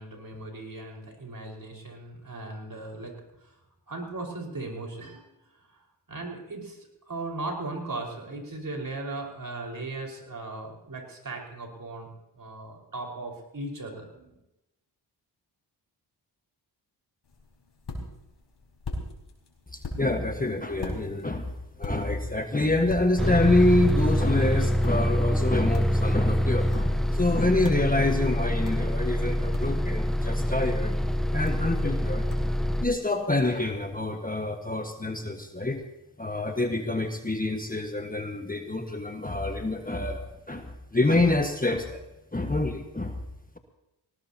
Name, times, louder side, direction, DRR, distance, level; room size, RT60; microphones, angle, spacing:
voice 1, 0.0-3.5 3.9-5.8 6.1-14.4, right 2 dB, 45° right, 0 dB, 5.0 m, -38 dB
sound 1, 17.2-34.0, left 2 dB, 60° left, 4.8 m, -42 dB
voice 2, 19.7-21.5 21.8-30.9 31.3-32.3 32.8-35.8 36.2-42.0 42.3-43.2, left 2 dB, 20° left, 5 dB, 1.4 m, -27 dB
Bus, 23.2-32.9, equal, ahead, 0.8 m, -25 dB
19.5 x 18.5 x 2.9 m, 0.92 s
supercardioid pair, 45°, 46 cm